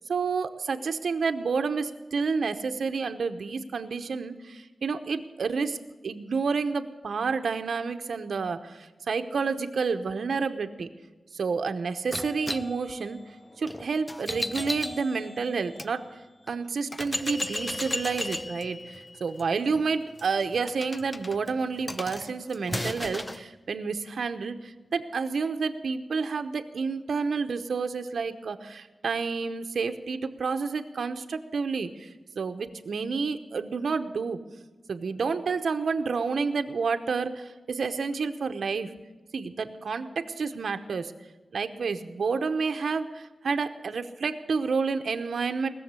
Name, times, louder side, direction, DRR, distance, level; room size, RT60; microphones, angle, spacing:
voice 1, 0.1-5.8 6.0-10.9 11.3-13.2 13.6-16.2 16.5-34.4 34.9-38.9 39.3-41.1 41.5-45.7, right 5 dB, 70° right, 7 dB, 0.9 m, -29 dB
sound 1, 12.1-15.9 16.5-16.6 16.9-23.4, left 1 dB, 10° left, 0.4 m, -36 dB
19.0 x 7.2 x 8.2 m, 1.2 s
wide cardioid pair, 175°, 0 cm